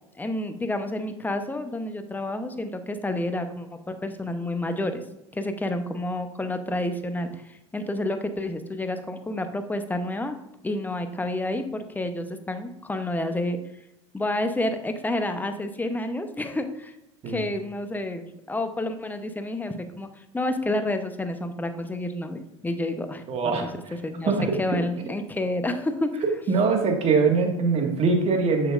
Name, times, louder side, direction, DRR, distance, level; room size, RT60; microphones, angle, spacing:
voice 1, 0.2-5.0 5.3-10.4 10.6-13.6 14.1-16.9 17.3-20.1 20.3-23.2 23.6-23.7 24.0-24.3 24.6-26.2, left 1 dB, 10° left, 8 dB, 0.8 m, -29 dB
voice 2, 23.3-24.0 24.3-24.5 26.5-28.7, right 4 dB, 40° right, 3 dB, 1.7 m, -22 dB
7.2 x 6.7 x 2.5 m, 0.89 s
hypercardioid pair, 80°, 15 cm